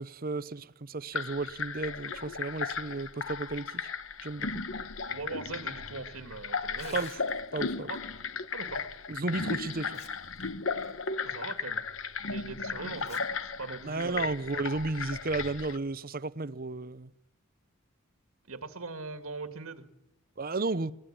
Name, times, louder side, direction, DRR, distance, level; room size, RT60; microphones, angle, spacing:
voice 1, 0.0-3.9 4.2-4.6 6.9-7.2 7.5-7.9 9.1-10.0 13.8-17.1 20.4-20.9, right 3 dB, 45° right, 0.8 m, -33 dB
sound 1, 1.1-15.8, left 5 dB, 65° left, 1.2 m, -36 dB
voice 2, 5.1-7.0 7.9-8.0 8.5-8.9 11.2-11.8 12.3-14.3 18.5-19.9, right 3 dB, 85° right, 1.9 m, -41 dB
Tearing, 6.7-7.6 9.1-9.2 9.7-10.4 10.8-10.9 11.6-11.7 12.9-13.2 13.6-13.7 14.6-14.8, left 4 dB, 30° left, 2.6 m, -51 dB
22.0 x 18.5 x 8.8 m
head